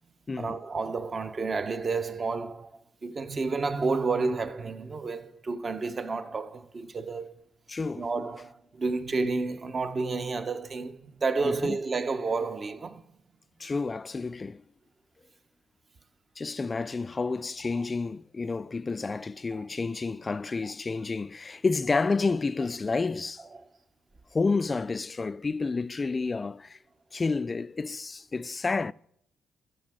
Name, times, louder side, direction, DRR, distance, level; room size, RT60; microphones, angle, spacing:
voice 1, 0.4-7.3 7.9-13.0 17.7-17.8 19.5-19.6 23.5-23.6, right 4 dB, 35° right, 1.0 m, -30 dB
voice 2, 7.7-8.1 11.4-11.8 13.6-14.6 16.4-23.5 24.3-26.8 27.1-28.9, left 4 dB, 30° left, 0.3 m, -30 dB
12.5 x 6.9 x 6.3 m
cardioid pair, 90°, 0 cm